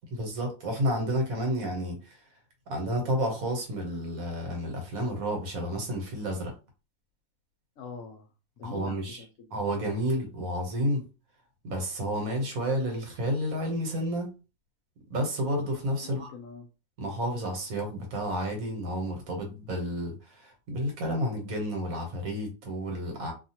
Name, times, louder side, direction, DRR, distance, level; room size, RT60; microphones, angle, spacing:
voice 1, 0.1-2.2 2.7-6.5 8.6-9.2 9.5-11.1 11.6-14.3 15.1-16.3 17.0-23.3, equal, 70° right, 1.4 m, -31 dB
voice 2, 7.8-8.3 8.6-9.6 16.0-16.7, left 4 dB, 70° left, 0.9 m, -43 dB
2.7 x 2.3 x 2.8 m
omnidirectional pair, 1.5 m